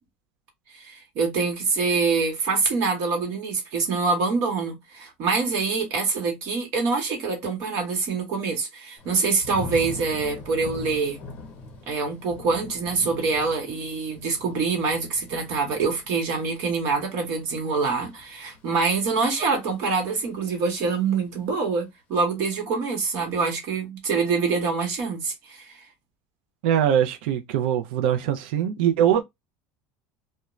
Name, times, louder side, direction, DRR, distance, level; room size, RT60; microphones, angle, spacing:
voice 1, 0.7-11.2 11.9-25.6, right 4 dB, 50° right, 1.0 m, -25 dB
Thunder / Rain, 9.0-19.9 20.3-20.8, left 3 dB, 30° left, 0.9 m, -42 dB
voice 2, 26.6-29.2, right 10 dB, 70° right, 0.4 m, -22 dB
2.4 x 2.1 x 3.0 m
cardioid pair, 175°, 6 cm